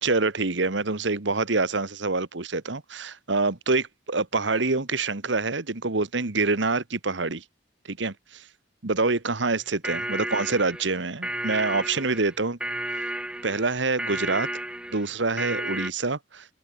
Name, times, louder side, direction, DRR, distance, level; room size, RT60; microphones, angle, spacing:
voice 1, 0.0-7.4 7.9-8.4 8.8-12.6 12.9-13.1 13.4-14.5 14.9-16.5, right 3 dB, 70° right, 1.5 m, -26 dB
sound 1, 9.6-15.9, right 1 dB, 5° right, 1.2 m, -32 dB
head